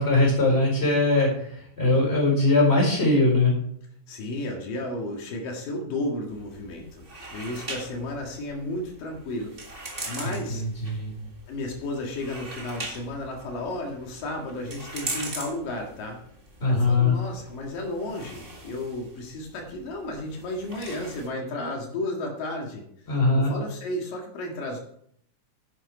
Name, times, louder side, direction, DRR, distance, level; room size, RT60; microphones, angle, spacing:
voice 1, 0.0-3.5 10.2-11.1 16.6-17.2 23.1-23.5, left 2 dB, 20° left, -2 dB, 4.6 m, -21 dB
voice 2, 4.1-7.0 7.3-10.6 11.5-16.2 16.6-22.8 23.4-24.8, left 1 dB, 90° left, 1 dB, 3.6 m, -33 dB
sound 1, 6.3-21.3, right 2 dB, 25° right, 1.5 m, -41 dB
10.5 x 9.1 x 4.9 m, 0.67 s
omnidirectional pair, 3.8 m